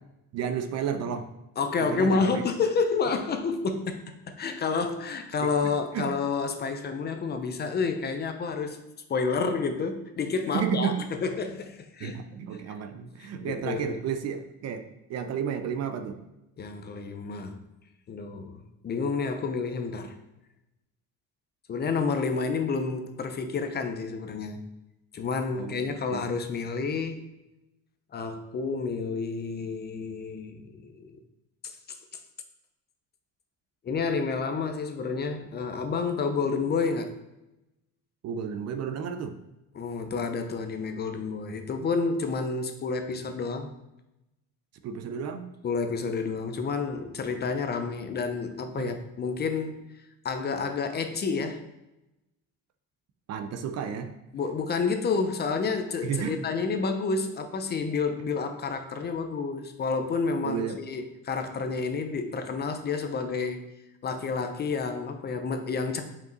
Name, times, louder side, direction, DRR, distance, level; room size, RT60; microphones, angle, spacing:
voice 1, 0.3-1.3 1.8-2.4 5.4-6.1 10.5-11.0 12.0-14.8 15.1-16.2 25.5-25.8 26.1-26.3 38.2-39.3 44.8-45.5 48.8-48.9 53.3-54.2 56.0-56.4 60.4-60.8, right 8 dB, 50° right, 8 dB, 0.6 m, -32 dB
voice 2, 1.6-4.0 4.3-8.8 9.1-12.2 12.7-12.8 13.2-14.0 16.6-17.6 18.1-20.1 21.7-24.6 25.1-27.3 28.1-31.2 31.6-32.0 33.8-37.1 39.7-43.7 45.6-49.8 50.2-51.6 54.3-63.6 64.0-66.0, left 4 dB, 30° left, 7 dB, 0.6 m, -29 dB
5.2 x 5.2 x 3.9 m, 0.94 s
cardioid pair, 140°, 34 cm